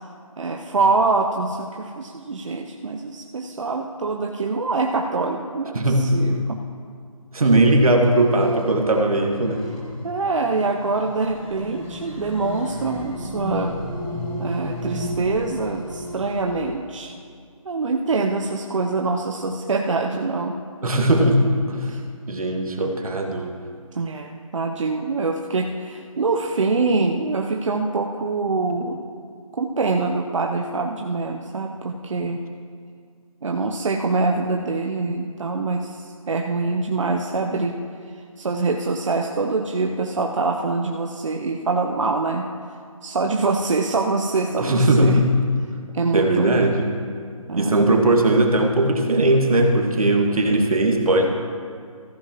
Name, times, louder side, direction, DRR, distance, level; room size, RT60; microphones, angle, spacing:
voice 1, 0.4-6.6 10.0-13.7 14.4-17.1 17.6-20.6 21.8-22.0 23.9-29.0 29.5-32.4 33.4-37.8 38.4-42.5 43.0-45.2 45.9-46.8 47.5-47.9, right 3 dB, 60° right, 2 dB, 0.7 m, -24 dB
voice 2, 7.3-9.7 20.8-21.9 22.3-23.5 44.6-45.3 46.1-46.9 47.6-51.3, right 1 dB, 85° right, 2 dB, 1.7 m, -19 dB
sound 1, 8.0-16.7, left 1 dB, 10° left, 1.1 m, -34 dB
14.0 x 12.0 x 3.0 m, 2.1 s
hypercardioid pair, 170°, 18 cm